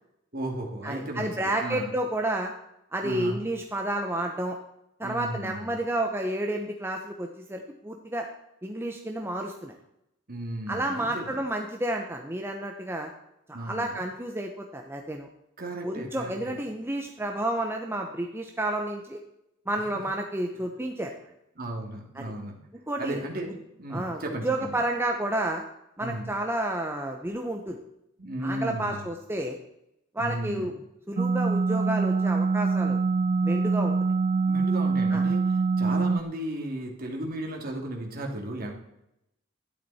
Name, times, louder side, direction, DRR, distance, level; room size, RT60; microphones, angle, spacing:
voice 1, 0.3-1.9 3.0-3.4 5.0-5.7 10.3-11.4 13.5-13.9 15.6-16.6 21.6-22.6 23.0-24.8 26.0-26.3 28.2-29.0 30.2-30.7 34.5-38.7, right 1 dB, 50° right, 1 dB, 2.7 m, -35 dB
voice 2, 0.8-2.5 2.9-4.6 5.0-8.3 8.6-9.7 10.7-13.1 13.5-15.3 15.8-19.2 19.7-21.1 22.2-22.3 22.9-23.2 23.9-25.6 26.0-27.8 28.4-29.6 30.1-30.8 31.1-33.0 33.4-33.9 35.1-35.2, right 1 dB, 10° right, 3 dB, 0.9 m, -30 dB
sound 1, 31.2-36.2, right 4 dB, 35° right, 0.3 m, -24 dB
12.0 x 11.0 x 4.3 m, 0.82 s
head